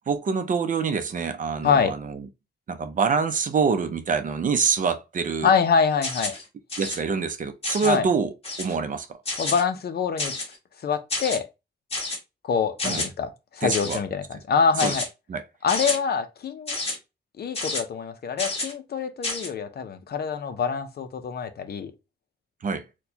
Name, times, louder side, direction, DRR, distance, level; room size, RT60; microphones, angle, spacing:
voice 1, 0.1-2.3 2.7-5.5 6.8-9.2 12.8-13.1 13.6-14.0 14.8-15.0 15.3-15.4 22.6-22.9, right 5 dB, 45° right, 0.5 m, -26 dB
voice 2, 5.4-6.4 7.8-8.0 9.4-10.3 10.8-11.5 12.4-15.1 15.6-16.8 17.4-21.9, left 6 dB, 60° left, 0.6 m, -25 dB
sound 1, 6.0-6.4 6.7-7.0 7.6-8.0 8.4-8.8 9.3-9.6 10.2-10.6 11.1-11.4 11.9-12.2 12.8-13.1 13.7-14.0 14.8-15.1 15.7-16.0 16.7-17.0 17.5-17.8 18.4-18.7 19.2-19.5, left 2 dB, 30° left, 1.3 m, -29 dB
4.3 x 2.2 x 2.7 m
wide cardioid pair, 155°, 18 cm